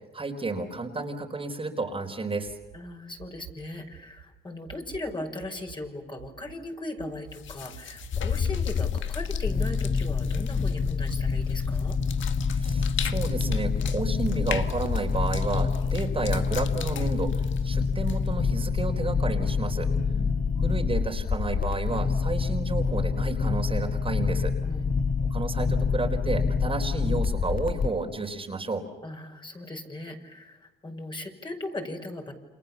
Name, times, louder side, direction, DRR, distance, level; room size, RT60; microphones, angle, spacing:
voice 1, 0.1-2.5 12.5-19.9 20.6-24.5 25.3-28.8, right 3 dB, 25° right, 3 dB, 4.3 m, -31 dB
sound 1, 2.4-2.8 3.2-3.6 3.9-4.3 4.7-5.1 5.4-5.9 6.2-6.6 7.0-7.3 7.7-8.2 8.5-8.9 9.3-9.7 10.0-10.5 10.8-11.2 11.6-12.0 12.4-12.8 13.2-13.6, right 14 dB, 90° right, 7.1 m, -46 dB
voice 2, 2.7-12.0 20.1-20.5 24.6-24.9 29.0-32.3, left 1 dB, 25° left, 3 dB, 6.4 m, -38 dB
sound 2, 7.3-18.5, left 10 dB, 75° left, 1.8 m, -41 dB
sound 3, 8.1-27.9, left 5 dB, 45° left, 1.6 m, -27 dB
30.0 x 27.5 x 7.2 m, 1.2 s
cardioid pair, 90°, 20 cm